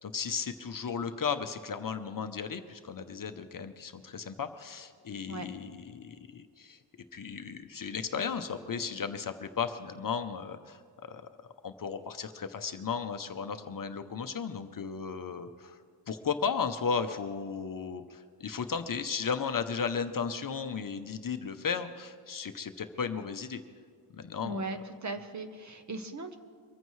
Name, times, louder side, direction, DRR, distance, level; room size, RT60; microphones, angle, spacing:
voice 1, 0.0-6.8 7.1-11.2 11.6-15.8 16.1-23.6 24.1-24.6, left 6 dB, 40° left, 8 dB, 0.7 m, -35 dB
voice 2, 24.4-26.4, right 2 dB, 35° right, 8 dB, 0.9 m, -38 dB
23.5 x 14.5 x 3.2 m, 2.1 s
wide cardioid pair, 165°, 50 cm